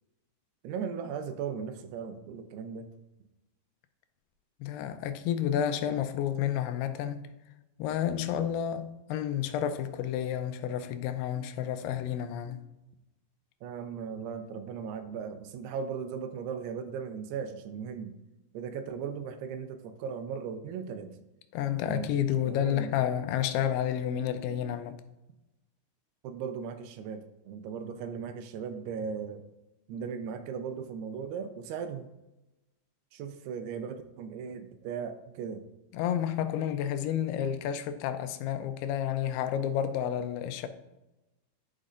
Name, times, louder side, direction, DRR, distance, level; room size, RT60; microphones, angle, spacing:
voice 1, 0.6-2.9 13.6-18.1 18.5-21.1 21.9-22.1 22.5-22.9 26.2-29.4 29.9-32.1 33.1-35.6, right 6 dB, 85° right, 2.7 m, -37 dB
voice 2, 4.6-7.3 7.8-12.6 21.5-25.0 35.9-40.7, left 10 dB, 85° left, 2.6 m, -30 dB
11.5 x 5.3 x 2.5 m
omnidirectional pair, 4.6 m